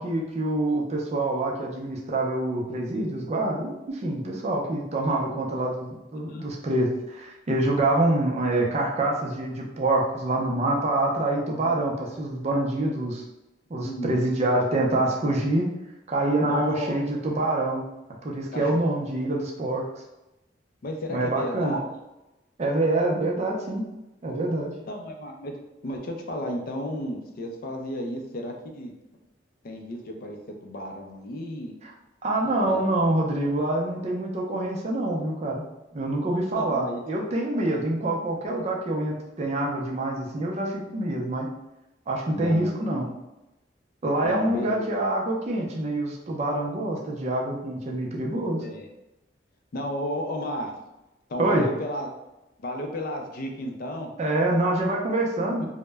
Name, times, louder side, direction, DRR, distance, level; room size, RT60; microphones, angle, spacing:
voice 1, 0.0-13.2 13.7-15.6 16.1-17.8 18.2-19.9 21.1-21.8 22.6-23.8 24.2-24.7 31.8-31.9 32.2-35.6 35.9-41.5 42.1-43.1 44.0-48.6 51.4-51.7 54.2-55.7, right 2 dB, 35° right, -1 dB, 0.4 m, -26 dB
voice 2, 13.8-14.2 16.3-17.0 18.5-18.8 19.1-19.2 20.8-21.9 24.9-25.5 25.8-28.9 29.6-31.7 32.7-32.9 36.6-37.0 42.3-43.0 44.2-44.9 48.6-48.9 49.7-50.7 51.3-52.1 52.6-54.1, equal, 50° left, 2 dB, 0.4 m, -33 dB
2.0 x 2.0 x 3.3 m, 0.98 s
head